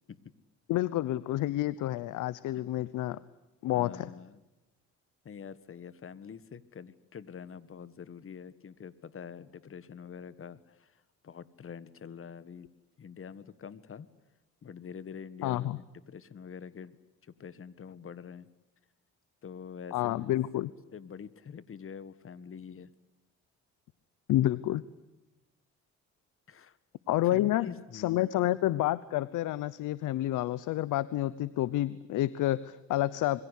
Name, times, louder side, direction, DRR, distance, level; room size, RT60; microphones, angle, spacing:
voice 1, 0.7-3.2 3.6-4.1 15.4-15.8 19.9-20.7 24.3-24.8 27.1-27.7 27.9-33.4, left 14 dB, 90° left, 18 dB, 0.9 m, -29 dB
voice 2, 3.7-4.4 5.2-12.7 13.0-14.1 14.6-17.0 17.2-18.5 19.4-20.3 20.9-22.9 26.5-26.8 27.3-28.3, left 7 dB, 45° left, 16 dB, 1.7 m, -46 dB
27.0 x 23.0 x 8.4 m, 1.0 s
cardioid pair, 90°, 30 cm